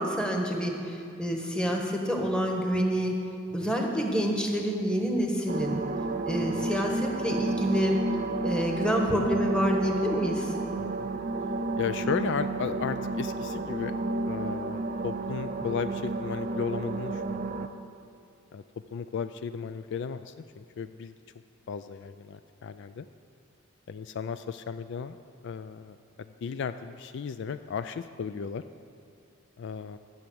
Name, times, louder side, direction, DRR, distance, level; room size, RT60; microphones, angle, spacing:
voice 1, 0.0-3.1 3.5-5.8 6.2-8.0 8.4-10.5, equal, 5° left, 1 dB, 1.2 m, -27 dB
sound 1, 5.5-17.7, right 2 dB, 40° right, 0.5 m, -31 dB
voice 2, 11.8-14.0 14.3-17.7 18.5-18.6 18.9-21.1 21.7-23.1 23.9-25.2 25.4-28.6 29.6-30.0, left 6 dB, 60° left, 11 dB, 0.3 m, -35 dB
12.0 x 7.0 x 7.9 m, 2.5 s
head